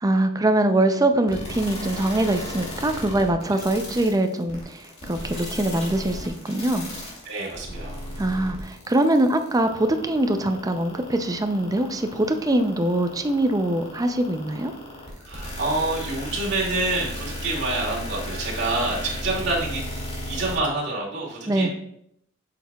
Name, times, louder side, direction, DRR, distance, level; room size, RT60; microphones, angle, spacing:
voice 1, 0.0-6.9 8.2-14.7 21.5-21.7, right 1 dB, 15° right, 7 dB, 0.5 m, -23 dB
sound 1, 1.3-20.6, left 1 dB, 30° left, 2.2 m, -35 dB
voice 2, 7.2-8.1 15.2-19.8 20.3-21.7, right 2 dB, 55° right, -4 dB, 2.4 m, -27 dB
8.2 x 6.3 x 2.3 m, 0.74 s
head